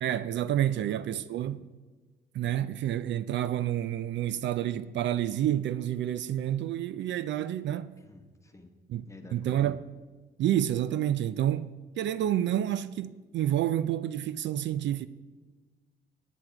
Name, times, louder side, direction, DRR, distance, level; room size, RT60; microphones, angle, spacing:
voice 1, 0.0-1.7 2.3-7.9 8.9-9.1 9.3-9.8 10.4-11.7 12.0-15.1, right 11 dB, 65° right, 0.4 m, -29 dB
voice 2, 8.0-8.7 9.1-9.7, left 2 dB, 15° left, 1.4 m, -50 dB
9.7 x 9.1 x 4.7 m
cardioid pair, 90°, 20 cm